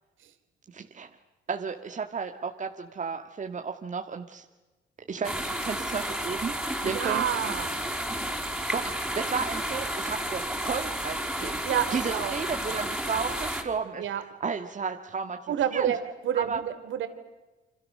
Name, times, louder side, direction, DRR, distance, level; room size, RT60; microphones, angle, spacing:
voice 1, 0.7-1.1 1.5-4.4 5.1-6.5 6.8-7.3 8.7-11.6 11.9-15.4 15.7-15.9 16.3-16.6, right 5 dB, 40° right, 4 dB, 1.8 m, -33 dB
sound 1, 5.2-13.6, right 1 dB, ahead, 5.0 m, -32 dB
voice 2, 6.8-7.7 11.6-12.3 14.0-14.2 15.5-16.0 16.2-17.1, right 10 dB, 75° right, 9 dB, 3.3 m, -28 dB
28.5 x 26.0 x 6.7 m, 1.2 s
cardioid pair, 90°, 20 cm